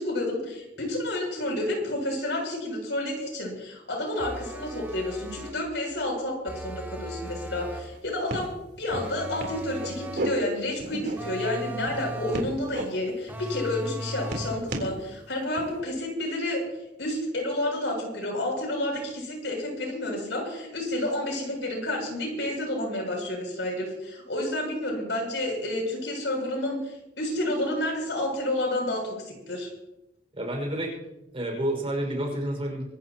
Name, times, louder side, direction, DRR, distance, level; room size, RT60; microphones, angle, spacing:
voice 1, 0.0-8.5 8.8-16.6 17.0-29.7, left 1 dB, 80° left, 1 dB, 7.3 m, -30 dB
sound 1, 4.2-5.7 6.5-8.0 8.9-10.4 11.2-12.6 13.3-14.7, right 1 dB, 10° right, 2.7 m, -37 dB
sound 2, 7.3-7.4 7.6-8.0 8.3-8.5 8.9-9.1 9.4-10.3 10.8-11.4 11.8-12.8 13.3-13.5 13.8-14.9 15.5-15.8, right 1 dB, 65° right, 3.8 m, -34 dB
voice 2, 30.4-31.0 31.3-32.9, right 1 dB, 30° right, 1 dB, 5.7 m, -29 dB
25.0 x 16.0 x 3.0 m, 0.95 s
head